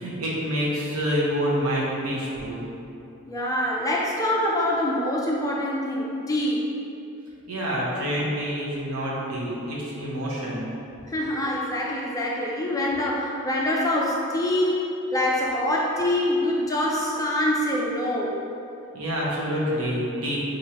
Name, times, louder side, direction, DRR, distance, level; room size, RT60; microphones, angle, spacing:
voice 1, 0.0-2.6 7.5-10.6 18.9-20.4, equal, 75° right, -5 dB, 0.8 m, -27 dB
voice 2, 3.3-6.7 11.1-18.4, left 1 dB, 15° left, -3 dB, 0.3 m, -25 dB
4.6 x 2.6 x 2.9 m, 2.7 s
head